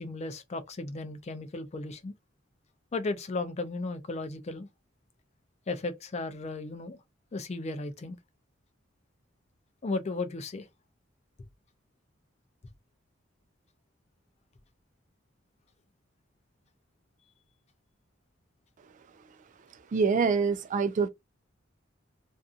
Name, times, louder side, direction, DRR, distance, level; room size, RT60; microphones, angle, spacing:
voice 1, 0.0-2.1 2.9-4.7 5.7-7.0 7.3-8.2 9.8-10.7, left 3 dB, 35° left, 0.4 m, -35 dB
voice 2, 19.9-21.1, right 5 dB, 40° right, 0.3 m, -25 dB
2.6 x 2.4 x 2.4 m
head